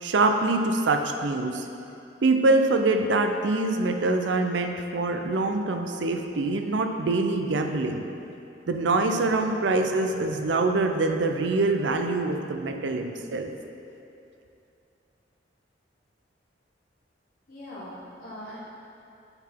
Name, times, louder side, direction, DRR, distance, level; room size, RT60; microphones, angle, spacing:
voice 1, 0.0-1.7 2.2-8.0 8.7-13.5, right 2 dB, 70° right, 5 dB, 0.5 m, -24 dB
voice 2, 17.5-18.6, equal, 50° left, -9 dB, 1.3 m, -41 dB
8.7 x 4.0 x 4.4 m, 2.7 s
head